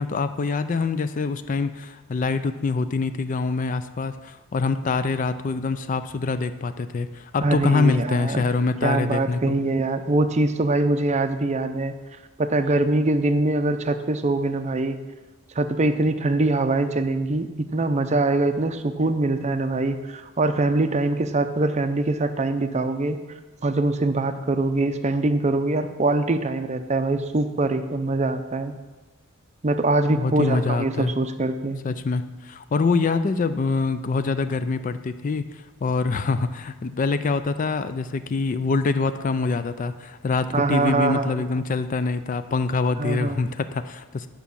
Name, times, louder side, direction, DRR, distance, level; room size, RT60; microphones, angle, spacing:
voice 1, 0.0-9.6 30.1-31.1 31.8-35.4 35.8-44.3, left 4 dB, 35° left, 12 dB, 0.4 m, -25 dB
voice 2, 7.4-8.5 8.8-12.0 12.4-15.0 15.6-23.2 23.6-28.7 29.6-31.8 40.5-41.4 43.0-43.4, right 2 dB, 30° right, 9 dB, 0.5 m, -23 dB
9.4 x 5.9 x 6.9 m, 1.2 s
head